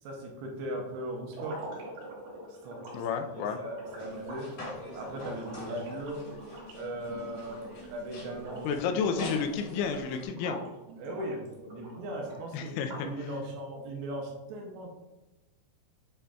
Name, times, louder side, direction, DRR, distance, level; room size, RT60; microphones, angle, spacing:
voice 1, 0.0-1.6 2.5-2.8 3.3-4.5 5.0-6.2 6.7-7.6 7.9-8.7 9.2-9.3 10.9-12.7 13.0-14.9, right 1 dB, 80° right, 1 dB, 2.7 m, -38 dB
sound 1, 1.3-7.9 8.2-8.7 9.0-10.7 11.0-13.2, right 1 dB, 60° right, 3.5 m, -44 dB
voice 2, 2.9-3.6 8.6-10.6 12.5-12.9, left 6 dB, 85° left, 5 dB, 2.9 m, -31 dB
sound 2, 3.9-10.2, left 1 dB, 50° left, 2.2 m, -45 dB
8.8 x 4.9 x 2.3 m, 1.1 s
omnidirectional pair, 5.4 m